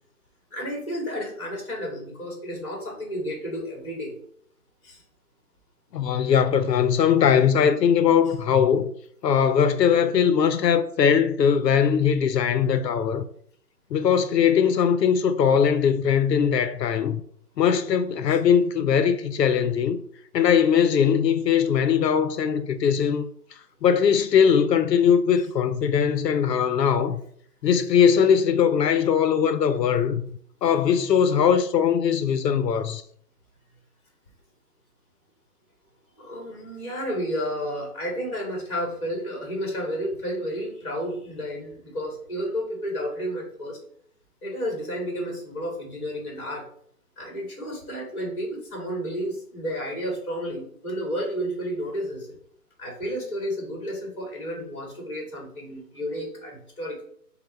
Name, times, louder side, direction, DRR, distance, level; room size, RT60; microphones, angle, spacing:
voice 1, 0.5-4.1 4.8-5.0 18.3-18.4 36.2-43.8 44.4-46.6 47.2-52.3 52.8-57.0, equal, 20° left, 1.4 m, -31 dB
voice 2, 5.9-8.9 9.2-13.2 13.9-17.2 17.6-20.0 20.3-23.3 23.5-27.2 27.6-30.3 30.6-33.0, left 7 dB, 90° left, 0.6 m, -20 dB
5.4 x 2.2 x 4.4 m
hypercardioid pair, 170°, 48 cm